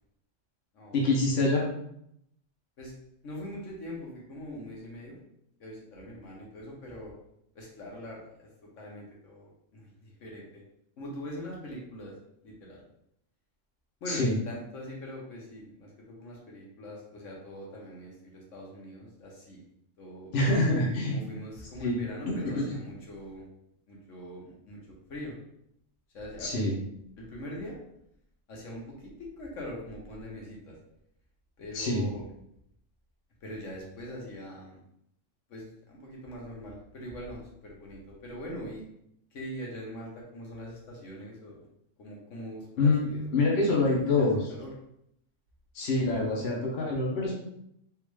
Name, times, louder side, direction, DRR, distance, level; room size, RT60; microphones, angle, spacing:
voice 1, 0.9-1.6 14.1-14.3 20.3-21.2 21.8-22.0 22.3-22.6 26.4-26.8 31.7-32.1 42.8-44.4 45.7-47.3, left 2 dB, 60° left, -3 dB, 1.0 m, -26 dB
voice 2, 3.2-5.2 5.6-7.1 7.5-8.5 8.8-10.6 11.0-12.2 12.4-12.8 14.0-19.6 20.0-23.5 23.9-25.4 26.1-26.5 27.2-27.8 28.5-30.8 31.6-32.3 33.4-34.8 35.5-38.8 39.3-41.7 42.0-43.2 43.5-44.7 46.0-46.2, equal, 75° left, -3 dB, 1.2 m, -42 dB
3.5 x 2.5 x 3.1 m, 0.75 s
omnidirectional pair, 1.3 m